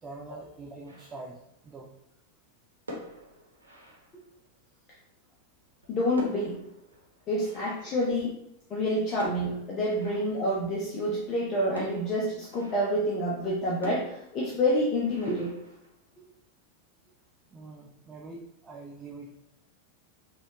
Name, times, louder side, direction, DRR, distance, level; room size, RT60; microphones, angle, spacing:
voice 1, 0.0-1.9 17.5-19.4, right 3 dB, 20° right, 0 dB, 0.4 m, -44 dB
sound 1, 0.9-1.6 2.7-4.6 5.6-8.8 9.2-10.7 11.7-13.1 13.8-16.3, equal, 75° right, 0.9 m, -46 dB
voice 2, 5.9-6.6 7.3-8.4 8.7-15.5, equal, 30° left, -4 dB, 0.7 m, -28 dB
4.1 x 2.3 x 2.9 m, 0.79 s
figure-of-eight pair, 90°, 0 cm